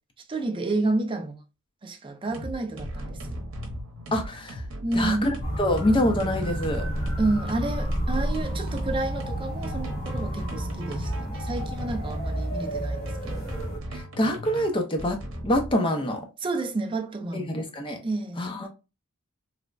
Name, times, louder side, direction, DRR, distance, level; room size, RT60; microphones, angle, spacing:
voice 1, 0.3-1.4 1.8-3.4 4.8-5.3 7.2-13.5 16.4-17.6 18.0-18.7, right 2 dB, 25° right, 0.4 m, -30 dB
sound 1, 2.3-12.3 13.1-15.7, equal, 65° right, 0.8 m, -37 dB
voice 2, 4.1-4.6 4.9-5.3 5.6-6.9 13.9-15.2 15.4-16.2 17.3-18.0 18.4-18.7, left 1 dB, 25° left, 0.6 m, -25 dB
sound 2, 5.4-13.8, equal, 60° left, 1.3 m, -31 dB
3.2 x 2.1 x 2.4 m
head